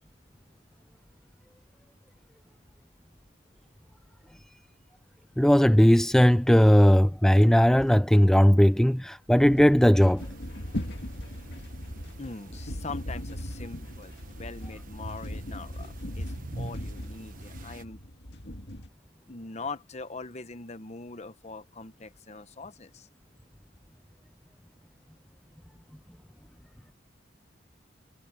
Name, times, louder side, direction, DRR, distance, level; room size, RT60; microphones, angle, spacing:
voice 1, 5.4-10.3, equal, 5° left, 0.3 m, -18 dB
sound 1, 9.4-18.9, left 1 dB, 60° left, 2.3 m, -39 dB
sound 2, 10.2-17.8, right 2 dB, 45° right, 1.1 m, -48 dB
voice 2, 12.2-18.0 19.3-23.1, left 3 dB, 35° left, 1.0 m, -42 dB
head